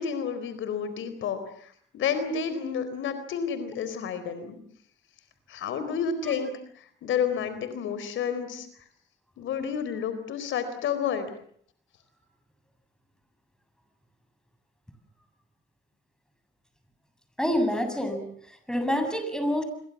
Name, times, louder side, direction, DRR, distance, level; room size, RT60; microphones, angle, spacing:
voice 1, 0.0-1.7 1.9-4.6 5.5-6.5 7.0-8.7 9.4-11.3, left 7 dB, 80° left, 11 dB, 4.2 m, -30 dB
voice 2, 17.4-19.6, equal, 5° left, 7 dB, 7.7 m, -27 dB
28.0 x 23.5 x 7.3 m, 0.62 s
cardioid pair, 90°, 20 cm